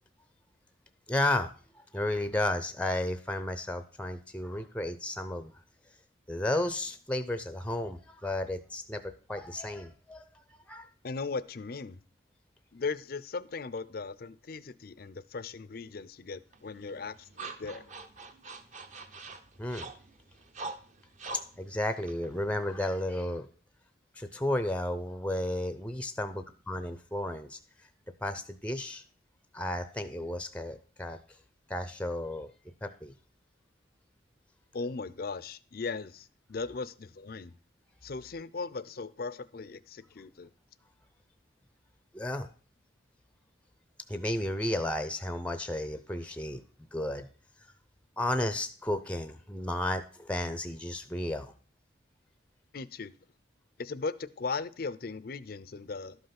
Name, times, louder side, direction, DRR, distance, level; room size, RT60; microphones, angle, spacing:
voice 1, 1.1-1.5 1.7-5.6 6.3-10.4 10.7-10.9 19.6-19.9 21.6-23.5 24.2-27.6 28.2-29.0 29.5-31.2 31.7-32.5 32.8-33.1 42.1-42.5 44.1-46.6 46.9-47.3 48.2-51.5, left 1 dB, 5° left, 0.6 m, -33 dB
voice 2, 11.0-12.0 12.7-17.8 34.7-37.5 38.0-40.5 52.7-53.2 53.8-56.2, left 4 dB, 50° left, 0.5 m, -38 dB
sound 1, 16.5-23.0, right 3 dB, 40° right, 0.9 m, -45 dB
12.0 x 5.5 x 5.8 m
head